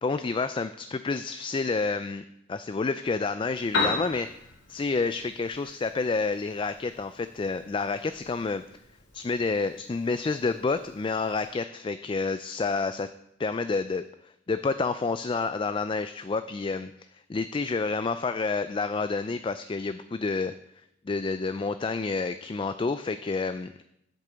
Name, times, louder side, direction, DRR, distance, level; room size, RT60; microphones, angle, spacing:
voice 1, 0.0-4.3 4.7-8.6 9.1-13.1 13.4-20.5 21.1-23.9, left 4 dB, 25° left, 11 dB, 0.3 m, -29 dB
Piano, 3.5-11.5, left 3 dB, 80° left, 3.2 m, -37 dB
8.3 x 6.7 x 7.9 m, 0.81 s
head